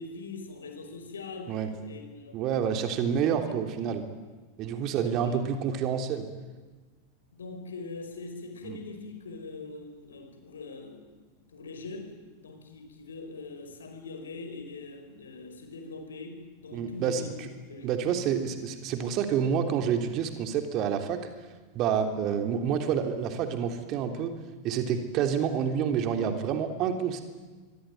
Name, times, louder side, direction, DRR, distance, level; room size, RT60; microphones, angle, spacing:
voice 1, 0.0-3.0 3.4-3.6 4.9-5.5 7.3-11.1 11.5-12.2 12.4-17.9, left 3 dB, 70° left, 7 dB, 5.0 m, -42 dB
voice 2, 2.3-4.1 4.6-6.3 8.6-8.8 16.7-17.2 17.8-21.2 21.7-24.3 24.6-27.2, right 7 dB, 35° right, 6 dB, 3.3 m, -28 dB
25.5 x 24.5 x 9.4 m, 1.3 s
figure-of-eight pair, 90°, 0 cm